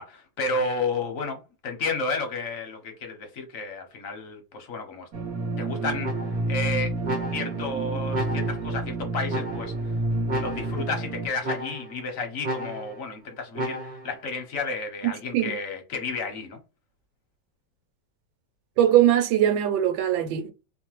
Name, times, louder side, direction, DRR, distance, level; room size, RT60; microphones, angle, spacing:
voice 1, 0.0-5.1 5.6-6.2 6.5-6.9 7.3-9.9 10.4-16.6, left 3 dB, 60° left, 0.9 m, -32 dB
sound 1, 5.1-11.3, right 2 dB, 55° right, 1.3 m, -29 dB
sound 2, 6.0-6.6 7.0-7.7 8.1-8.8 9.3-9.9 10.3-10.9 11.4-12.0 12.4-13.1 13.5-14.2, right 1 dB, 35° right, 1.0 m, -33 dB
voice 2, 15.0-15.6 18.8-20.5, right 11 dB, 80° right, 1.3 m, -21 dB
3.1 x 2.2 x 2.9 m
omnidirectional pair, 2.1 m